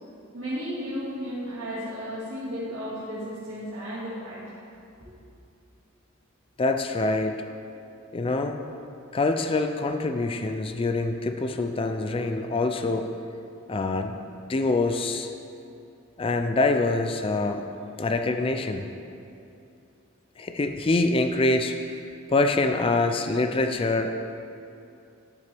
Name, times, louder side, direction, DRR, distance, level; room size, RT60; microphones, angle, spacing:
voice 1, 0.3-4.4, equal, 80° right, -10 dB, 2.2 m, -34 dB
voice 2, 6.6-7.4 8.1-8.6 9.1-13.1 13.7-14.2 14.5-15.3 16.2-17.6 18.0-18.9 20.4-21.8 22.3-24.1, left 2 dB, 25° left, 6 dB, 0.4 m, -25 dB
13.0 x 6.8 x 3.4 m, 2.6 s
head